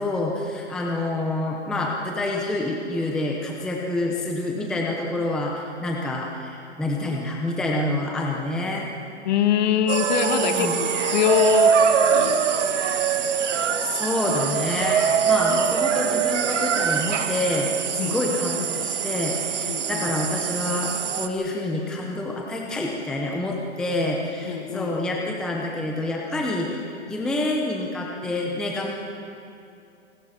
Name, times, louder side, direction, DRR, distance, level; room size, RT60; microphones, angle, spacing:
voice 1, 0.0-8.9 10.4-10.8 13.8-28.9, left 2 dB, ahead, -1 dB, 0.8 m, -27 dB
voice 2, 9.2-11.8 12.1-12.4 18.0-18.2 18.8-18.9 19.7-20.1 24.4-25.2, left 9 dB, 35° left, 8 dB, 1.4 m, -24 dB
sound 1, 9.9-21.3, right 7 dB, 75° right, 1.6 m, -23 dB
sound 2, 10.5-11.3 11.6-11.8 12.2-15.9 16.2-17.9 18.2-22.0 22.2-22.4, right 3 dB, 30° right, 3.6 m, -44 dB
27.0 x 19.5 x 5.9 m, 2.6 s
hypercardioid pair, 160°, 36 cm